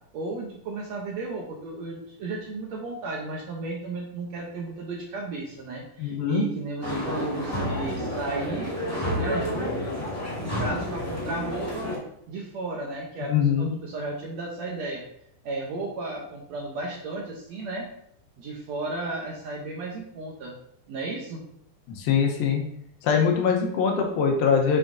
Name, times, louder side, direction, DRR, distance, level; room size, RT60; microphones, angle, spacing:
voice 1, 0.1-9.8 10.4-11.9 12.3-15.0 15.4-17.9 18.4-20.5 20.9-21.4, right 2 dB, 70° right, -1 dB, 1.7 m, -34 dB
voice 2, 6.0-6.5 13.3-13.8 21.9-22.6 23.0-24.8, left 6 dB, 90° left, 2 dB, 2.9 m, -23 dB
sound 1, 6.8-12.0, left 1 dB, 10° left, 1.0 m, -30 dB
7.2 x 6.3 x 2.7 m, 0.70 s
omnidirectional pair, 4.0 m